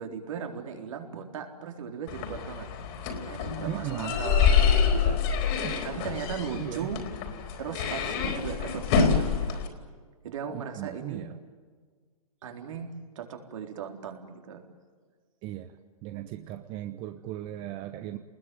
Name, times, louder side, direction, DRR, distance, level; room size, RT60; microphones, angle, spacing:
voice 1, 0.0-2.7 3.3-5.2 5.4-7.0 7.6-9.6 10.2-11.3 12.4-12.9 13.2-14.6 17.8-18.1, right 7 dB, 55° right, 3 dB, 4.1 m, -38 dB
sound 1, 2.1-9.7, left 6 dB, 40° left, 4.3 m, -26 dB
voice 2, 3.7-4.2 5.6-5.9 6.5-6.9 10.5-11.3 15.4-15.7 16.0-18.2, right 14 dB, 25° right, 8 dB, 1.0 m, -37 dB
29.0 x 20.5 x 9.5 m, 1.5 s
hypercardioid pair, 130°, 19 cm